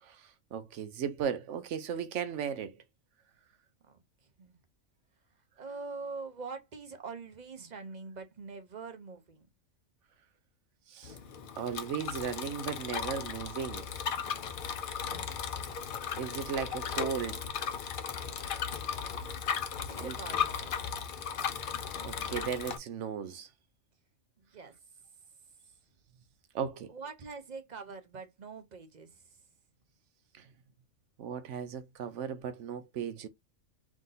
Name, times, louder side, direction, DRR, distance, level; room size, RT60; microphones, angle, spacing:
voice 1, 0.0-2.7 10.9-11.2 11.6-13.9 16.2-17.4 20.0-20.1 22.0-23.5 26.5-26.9 30.3-30.5 31.2-33.3, right 7 dB, 70° right, 0.9 m, -36 dB
voice 2, 3.8-4.6 5.3-9.5 14.9-15.5 19.8-21.1 24.4-24.8 26.9-29.4, right 4 dB, 40° right, 0.7 m, -45 dB
Bicycle, 11.0-22.8, left 7 dB, 55° left, 0.6 m, -36 dB
3.6 x 2.6 x 3.9 m
omnidirectional pair, 1.4 m